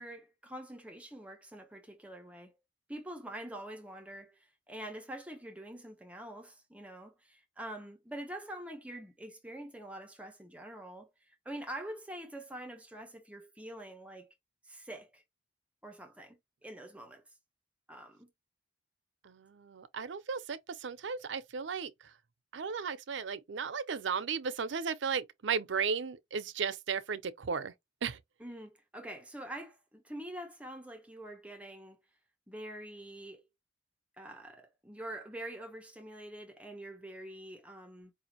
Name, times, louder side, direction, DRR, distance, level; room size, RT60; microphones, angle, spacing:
voice 1, 0.0-2.5 2.9-14.3 14.6-15.2 15.8-17.2 17.9-18.3 28.4-32.0 32.5-33.5 34.2-38.1, right 1 dB, 5° right, 0.6 m, -45 dB
voice 2, 19.2-22.1 22.5-27.7 28.0-28.2, right 6 dB, 85° right, 0.6 m, -35 dB
4.8 x 2.5 x 2.9 m
head